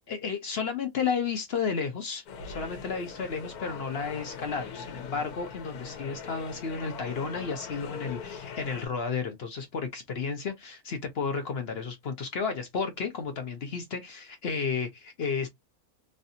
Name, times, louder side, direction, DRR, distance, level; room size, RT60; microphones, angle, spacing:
voice 1, 0.1-15.5, left 5 dB, 55° left, 0.8 m, -32 dB
sound 1, 2.3-8.9, left 6 dB, 85° left, 1.3 m, -41 dB
3.2 x 2.6 x 2.6 m
omnidirectional pair, 1.5 m